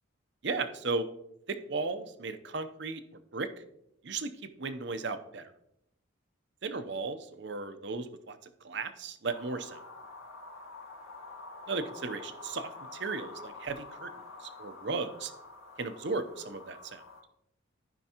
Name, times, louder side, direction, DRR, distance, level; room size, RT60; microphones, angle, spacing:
voice 1, 0.4-1.1 1.5-3.0 3.3-3.5 4.0-5.4 6.6-8.4 8.6-9.8 11.7-14.1 14.4-15.3 15.8-17.0, right 3 dB, 60° right, 10 dB, 0.7 m, -35 dB
sound 1, 9.3-17.2, left 3 dB, 85° left, 1.5 m, -48 dB
14.5 x 5.3 x 2.9 m, 0.80 s
head